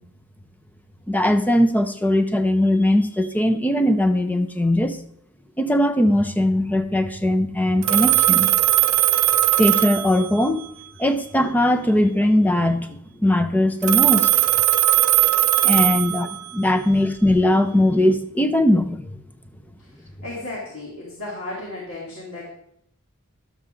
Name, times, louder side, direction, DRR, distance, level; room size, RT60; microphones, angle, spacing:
voice 1, 1.1-5.0 5.6-8.5 9.6-10.6 11.0-14.3 15.6-19.0, left 1 dB, 10° left, 8 dB, 0.6 m, -20 dB
Telephone, 7.8-10.7 13.8-16.7, right 14 dB, 85° right, 0.5 m, -19 dB
voice 2, 19.8-22.5, left 2 dB, 70° left, -5 dB, 2.7 m, -35 dB
11.5 x 6.9 x 3.8 m, 0.72 s
head